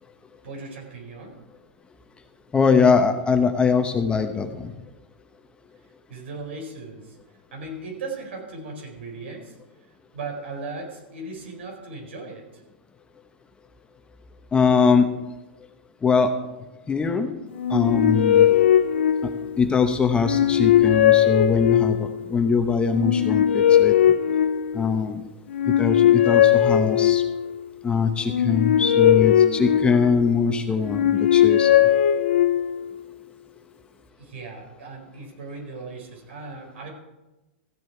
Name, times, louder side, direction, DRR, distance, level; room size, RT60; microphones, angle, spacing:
voice 1, 0.4-1.4 6.1-7.2 7.5-9.6 10.1-12.6 34.2-36.9, right 3 dB, 75° right, 1 dB, 4.4 m, -37 dB
voice 2, 2.5-4.7 14.5-15.1 16.0-16.3 16.9-17.3 17.7-18.5 19.2-19.3 19.6-24.1 24.7-25.2 25.8-27.2 27.8-31.7, left 5 dB, 15° left, 7 dB, 1.0 m, -22 dB
sound 1, 17.6-19.7 20.2-22.2 22.9-25.0 25.5-27.5 28.2-30.4 30.8-32.9, left 10 dB, 80° left, 0.6 m, -19 dB
15.0 x 7.7 x 4.6 m, 1.0 s
hypercardioid pair, 120°, 6 cm